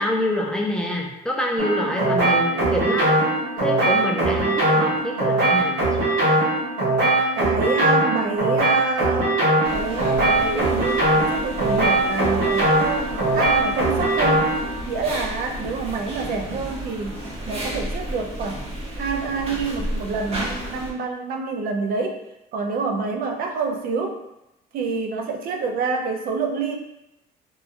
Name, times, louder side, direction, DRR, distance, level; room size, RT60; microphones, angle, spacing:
voice 1, 0.0-3.1 3.6-5.9, left 1 dB, 5° left, -1 dB, 0.5 m, -26 dB
sound 1, 1.6-14.7, right 2 dB, 85° right, 1.1 m, -21 dB
voice 2, 7.3-9.4 9.7-14.5 14.9-22.2 22.5-24.2 24.7-26.8, right 4 dB, 60° right, 3 dB, 0.5 m, -27 dB
sound 2, 9.6-20.9, right 1 dB, 35° right, 0.8 m, -33 dB
2.9 x 2.3 x 2.5 m, 0.90 s
cardioid pair, 110°, 17 cm